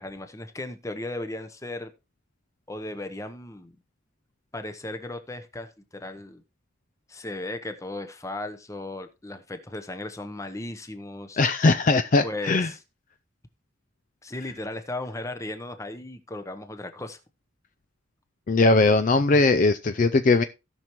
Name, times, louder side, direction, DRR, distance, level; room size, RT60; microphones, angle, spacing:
voice 1, 0.0-1.9 2.7-3.8 4.5-6.4 7.1-11.4 12.2-12.8 14.2-17.2, left 2 dB, 15° left, 0.8 m, -36 dB
voice 2, 11.4-12.7 18.5-20.4, left 3 dB, 40° left, 0.4 m, -20 dB
17.0 x 6.0 x 3.0 m
head